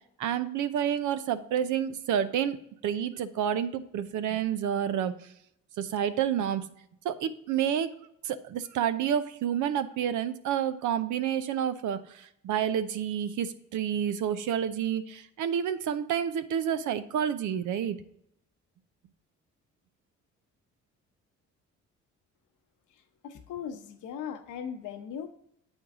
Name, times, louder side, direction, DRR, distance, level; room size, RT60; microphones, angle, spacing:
voice 1, 0.2-5.2 5.8-6.7 7.0-8.0 8.2-18.0, right 9 dB, 75° right, 12 dB, 0.6 m, -29 dB
voice 2, 23.2-25.3, left 8 dB, 80° left, 7 dB, 0.9 m, -38 dB
8.0 x 4.5 x 3.6 m, 0.75 s
cardioid pair, 90°, 30 cm